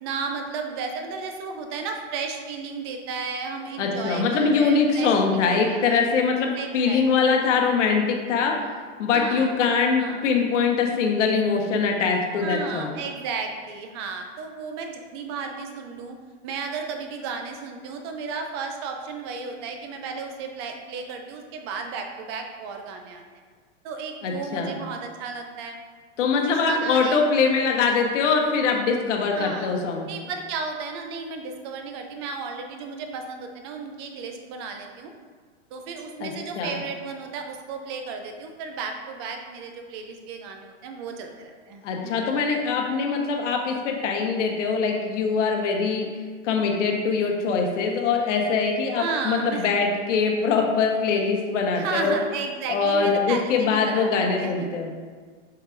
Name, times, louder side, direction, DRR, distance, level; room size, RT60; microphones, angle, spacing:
voice 1, 0.0-6.0 6.6-7.0 9.1-9.5 10.0-10.3 12.4-16.2 16.4-23.2 23.8-25.8 26.3-27.2 29.4-29.7 30.1-35.1 35.7-42.3 49.0-49.7 50.3-50.4 51.8-54.7, right 5 dB, 25° right, 4 dB, 0.3 m, -34 dB
voice 2, 3.8-8.6 9.0-13.0 24.2-24.7 26.2-30.1 36.2-36.3 36.6-36.8 41.8-46.1 46.4-52.1 52.7-54.9, left 5 dB, 70° left, 2 dB, 1.1 m, -23 dB
6.4 x 5.7 x 2.5 m, 1.5 s
supercardioid pair, 150°, 37 cm